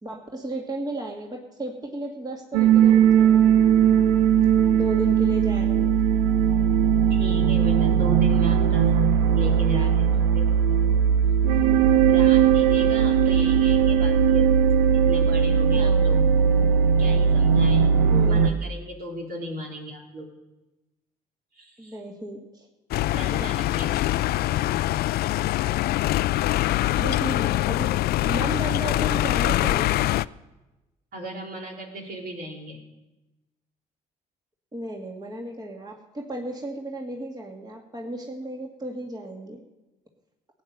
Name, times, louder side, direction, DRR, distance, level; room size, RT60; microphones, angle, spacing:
voice 1, 0.0-3.5 4.7-6.0 11.6-12.1 15.7-16.1 18.1-18.6 21.8-22.7 27.0-27.9 28.3-30.1 34.7-39.6, right 1 dB, 20° right, 0 dB, 2.2 m, -34 dB
sound 1, 2.5-18.5, right 8 dB, 80° right, 0.6 m, -19 dB
voice 2, 7.1-10.5 12.1-14.5 14.9-16.3 17.0-18.0 18.3-20.3 21.5-22.0 23.1-24.1 31.1-32.8, equal, 55° right, -1 dB, 3.6 m, -36 dB
sound 2, 22.9-30.3, left 15 dB, 55° left, 0.4 m, -24 dB
17.0 x 9.0 x 6.8 m, 1.0 s
hypercardioid pair, 55°, 19 cm